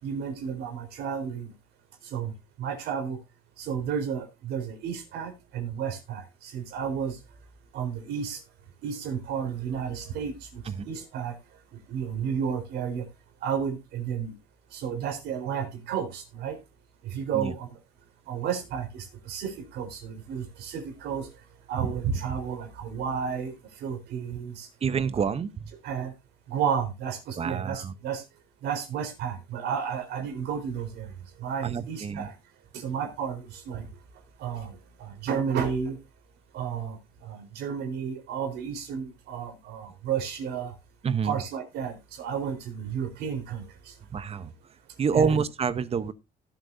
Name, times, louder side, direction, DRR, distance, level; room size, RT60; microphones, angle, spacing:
voice 1, 0.0-1.5 2.1-2.3 2.6-3.2 3.6-7.2 7.7-8.4 8.8-11.3 11.9-13.0 13.4-14.3 14.7-16.6 17.0-17.7 18.3-21.3 21.7-23.5 23.8-24.7 25.8-26.1 26.5-28.2 28.6-31.1 31.4-32.3 32.7-33.8 34.4-34.7 35.0-36.0 36.5-37.0 37.2-40.7 41.2-43.6 45.1-45.4, right 7 dB, 80° right, 4.1 m, -32 dB
voice 2, 24.8-25.7 27.4-27.9 31.6-32.3 41.0-41.4 44.1-44.5 45.0-46.1, right 6 dB, 35° right, 0.8 m, -27 dB
18.0 x 7.9 x 2.7 m
cardioid pair, 110°, 17 cm